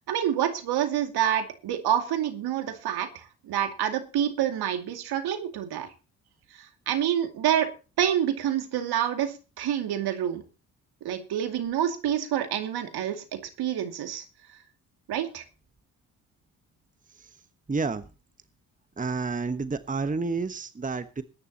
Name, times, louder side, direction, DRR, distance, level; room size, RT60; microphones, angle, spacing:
voice 1, 0.1-5.9 6.6-7.7 8.0-10.4 11.0-14.2 15.1-15.4, right 10 dB, 65° right, 6 dB, 2.4 m, -27 dB
voice 2, 17.7-18.0 19.0-21.2, right 4 dB, 20° right, 11 dB, 1.2 m, -29 dB
21.0 x 11.0 x 2.9 m, 0.33 s
hypercardioid pair, 45°, 41 cm